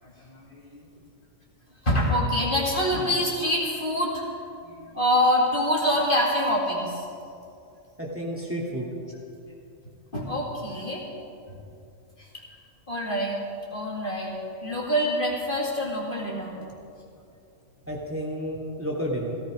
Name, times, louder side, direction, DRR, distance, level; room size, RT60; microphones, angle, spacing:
voice 1, 0.0-0.9 1.8-4.2 4.6-7.0 10.1-11.0 11.5-11.6 12.2-12.3 12.9-13.4 13.7-14.4 14.6-16.7, equal, 40° left, -4 dB, 2.4 m, -26 dB
voice 2, 8.0-8.9 17.9-19.4, equal, 10° right, -4 dB, 2.5 m, -31 dB
16.5 x 15.0 x 5.1 m, 2.5 s
omnidirectional pair, 1.4 m